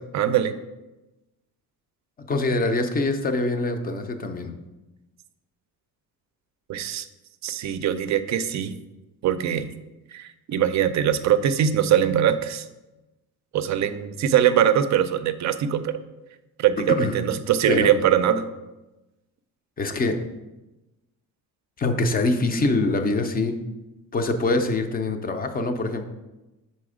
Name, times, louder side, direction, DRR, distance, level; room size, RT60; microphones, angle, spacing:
voice 1, 0.1-0.5 6.7-7.1 7.4-8.7 9.2-9.7 10.1-12.7 13.5-16.0 16.6-18.4, right 9 dB, 50° right, 11 dB, 0.4 m, -22 dB
voice 2, 2.2-4.5 17.0-17.1 17.7-17.9 19.8-20.1 21.8-23.5 24.1-26.0, left 2 dB, 25° left, 7 dB, 0.5 m, -24 dB
6.1 x 4.2 x 4.9 m, 1.0 s
cardioid pair, 155°, 37 cm